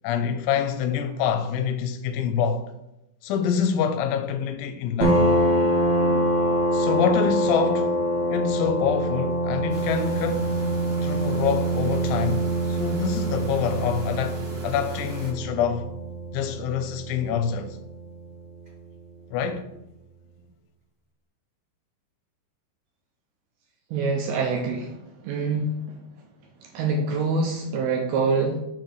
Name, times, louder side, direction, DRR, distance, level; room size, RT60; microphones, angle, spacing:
voice 1, 0.0-2.7 3.2-5.2 6.7-8.0 8.3-10.6 11.0-15.9 16.3-17.8 19.3-19.7, left 7 dB, 85° left, 3.0 m, -26 dB
sound 1, 5.0-18.3, right 1 dB, 30° right, 0.8 m, -25 dB
sound 2, 9.7-15.3, right 1 dB, 45° right, 1.4 m, -41 dB
voice 2, 23.9-25.0 25.2-26.0 26.7-28.6, right 4 dB, 75° right, 2.5 m, -25 dB
6.8 x 4.4 x 6.3 m
omnidirectional pair, 5.4 m